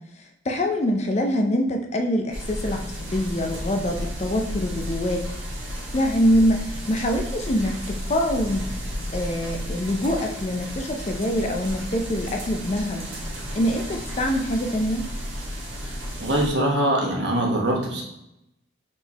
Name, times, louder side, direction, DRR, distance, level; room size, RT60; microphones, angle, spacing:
voice 1, 0.4-5.2 5.9-8.7 9.1-13.1 13.5-15.1, equal, 35° left, 3 dB, 0.4 m, -24 dB
sound 1, 2.3-16.5, equal, 80° right, 1.2 m, -33 dB
voice 2, 16.2-18.0, right 1 dB, 60° right, -2 dB, 1.0 m, -22 dB
4.2 x 3.6 x 2.8 m, 0.86 s
head